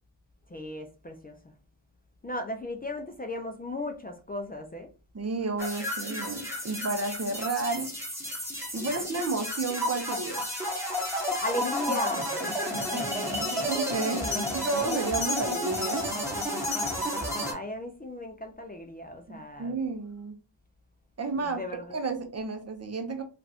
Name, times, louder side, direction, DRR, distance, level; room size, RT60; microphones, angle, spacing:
voice 1, 0.5-1.4 2.2-4.9 8.9-9.1 11.4-12.4 14.1-14.5 17.4-19.8 21.4-22.0, left 1 dB, 20° left, 0.4 m, -36 dB
voice 2, 5.1-7.9 8.7-10.4 12.8-16.1 19.3-20.3 21.2-21.6 21.9-23.2, right 3 dB, 35° right, 0.7 m, -32 dB
sound 1, 5.6-17.5, equal, 5° right, 1.3 m, -31 dB
2.6 x 2.5 x 3.3 m
cardioid pair, 75°, 47 cm